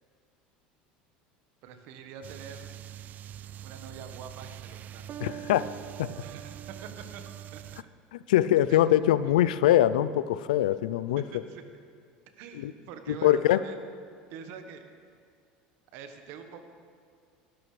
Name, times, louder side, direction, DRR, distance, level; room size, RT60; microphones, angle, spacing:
voice 1, 1.6-2.7 3.6-5.1 6.2-7.2 7.5-7.8 8.7-9.1 11.3-11.6 12.4-13.8 14.3-14.9 15.9-16.7, right 7 dB, 65° right, 7 dB, 1.3 m, -45 dB
sound 1, 2.2-7.8, right 11 dB, 45° right, 0.4 m, -43 dB
voice 2, 5.2-5.7 6.0-6.1 8.3-11.2 12.6-12.7 13.1-13.6, left 12 dB, 85° left, 16 dB, 0.4 m, -23 dB
17.5 x 12.5 x 3.3 m, 2.2 s
supercardioid pair, 95°, 4 cm